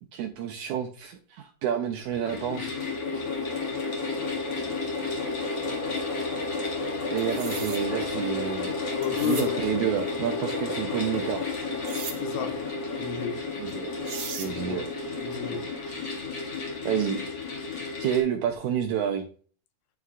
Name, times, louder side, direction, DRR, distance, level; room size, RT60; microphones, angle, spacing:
voice 1, 0.1-2.7 7.1-8.8 9.1-11.5 13.6-14.0 14.3-14.9 16.8-17.2 18.0-19.3, right 9 dB, 85° right, 1.7 m, -29 dB
sound 1, 2.0-18.2, left 3 dB, 40° left, 1.7 m, -32 dB
sound 2, 7.2-7.8 9.0-9.5 11.8-12.2 13.7-13.8 14.0-14.5, right 7 dB, 65° right, 1.6 m, -37 dB
voice 2, 8.9-9.7 12.2-12.6 13.0-13.4 14.5-14.8 15.2-15.7, left 8 dB, 75° left, 1.8 m, -33 dB
9.2 x 3.3 x 3.6 m
omnidirectional pair, 3.9 m